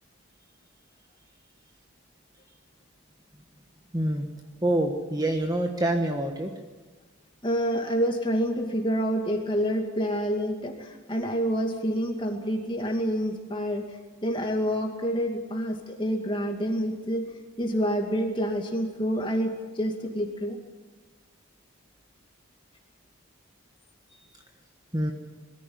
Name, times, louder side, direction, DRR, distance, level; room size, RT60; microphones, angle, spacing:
voice 1, 3.9-4.3 4.6-6.5 24.9-25.1, right 1 dB, 15° right, 4 dB, 1.4 m, -26 dB
voice 2, 7.4-17.3 17.6-20.6 24.1-24.3, equal, 25° left, 2 dB, 2.4 m, -28 dB
22.0 x 14.5 x 9.6 m, 1.4 s
head